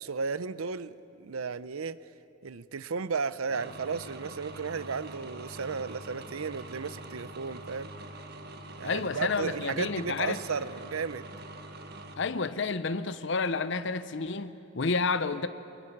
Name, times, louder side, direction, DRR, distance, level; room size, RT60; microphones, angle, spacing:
voice 1, 0.0-2.0 2.4-7.9 8.8-11.3, right 5 dB, 90° right, 0.7 m, -34 dB
sound 1, 3.5-12.2, right 1 dB, 50° right, 1.7 m, -44 dB
voice 2, 8.8-10.4 12.2-15.5, left 4 dB, 60° left, 0.7 m, -30 dB
23.5 x 21.5 x 10.0 m
head